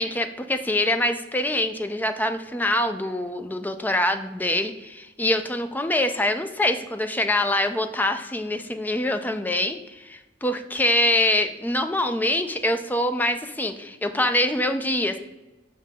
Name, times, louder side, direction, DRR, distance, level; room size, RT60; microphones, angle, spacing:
voice 1, 0.0-15.2, left 1 dB, 10° left, 8 dB, 0.4 m, -24 dB
6.1 x 5.8 x 3.6 m, 1.0 s
head